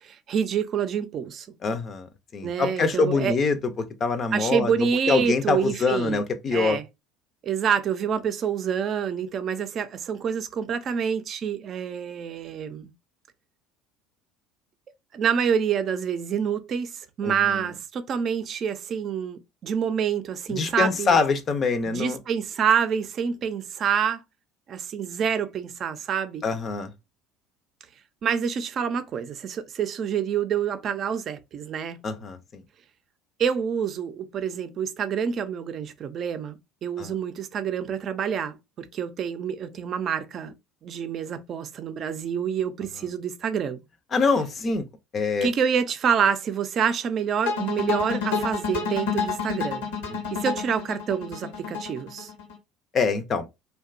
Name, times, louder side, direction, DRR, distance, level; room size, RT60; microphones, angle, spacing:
voice 1, 0.0-1.5 2.4-3.4 4.3-6.2 6.5-6.8 7.4-12.9 15.1-21.2 21.9-24.2 24.7-26.4 28.2-32.0 33.4-40.5 40.8-43.8 45.4-49.9 50.3-52.3, right 7 dB, 50° right, 0.5 m, -27 dB
voice 2, 1.6-6.8 17.2-17.7 20.5-22.2 26.4-26.9 32.0-32.6 37.0-37.1 44.1-44.8 45.1-45.5 50.1-50.4 52.9-53.5, left 4 dB, 40° left, 0.5 m, -25 dB
sound 1, 47.5-52.6, left 6 dB, 85° left, 0.8 m, -29 dB
2.7 x 2.2 x 2.4 m
hypercardioid pair, 75°, 0 cm